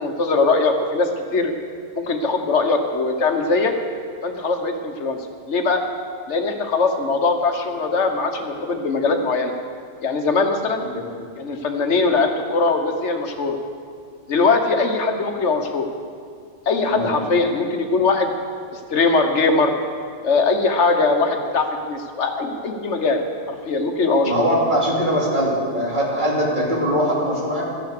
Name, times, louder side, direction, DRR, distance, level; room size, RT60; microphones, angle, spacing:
voice 1, 0.0-1.5 2.0-3.7 4.2-5.2 5.5-5.8 6.3-9.5 10.0-10.8 11.4-13.6 14.3-15.9 16.7-18.3 18.7-19.7 20.2-23.2 23.5-24.5, left 3 dB, 75° left, 5 dB, 1.4 m, -21 dB
voice 2, 24.2-27.6, equal, 40° right, -4 dB, 2.9 m, -21 dB
14.0 x 10.0 x 6.6 m, 2.2 s
omnidirectional pair, 1.2 m